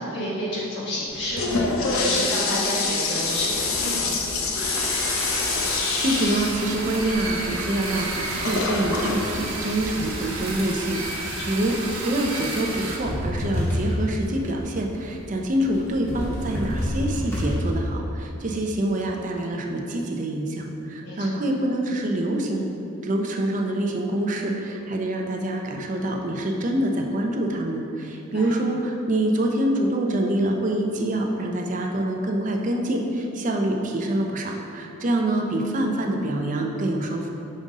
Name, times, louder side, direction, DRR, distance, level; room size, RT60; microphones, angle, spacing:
voice 1, 0.0-4.5 11.3-11.5 21.0-21.4 28.1-28.5, equal, 55° left, -6 dB, 1.5 m, -30 dB
Toilet flush, 1.1-10.5, left 3 dB, 70° left, 0.6 m, -27 dB
sound 1, 3.2-17.5, equal, 10° left, 1.3 m, -33 dB
sound 2, 4.5-13.0, right 2 dB, 85° right, 1.0 m, -32 dB
voice 2, 5.7-22.7 23.0-37.3, right 1 dB, 35° right, 1 dB, 0.5 m, -26 dB
5.4 x 5.0 x 3.6 m, 2.8 s
head